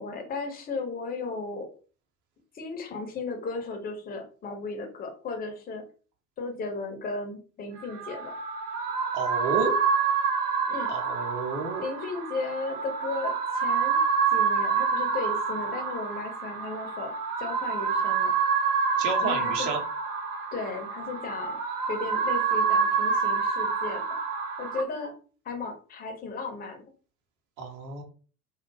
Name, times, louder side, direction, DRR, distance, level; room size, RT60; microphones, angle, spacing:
voice 1, 0.0-1.7 2.5-5.8 6.4-8.3 10.7-10.9 11.8-14.0 14.3-17.1 17.4-18.3 19.2-19.7 20.5-21.6 21.9-24.0 24.6-25.1 25.5-26.8, left 3 dB, 20° left, 4 dB, 0.6 m, -35 dB
sound 1, 7.8-24.8, right 5 dB, 70° right, 0.8 m, -27 dB
voice 2, 9.1-9.7 10.9-11.9 19.0-19.8 27.6-28.0, right 4 dB, 40° right, 3 dB, 0.8 m, -31 dB
2.3 x 2.0 x 3.2 m, 0.37 s
figure-of-eight pair, 75°, 48 cm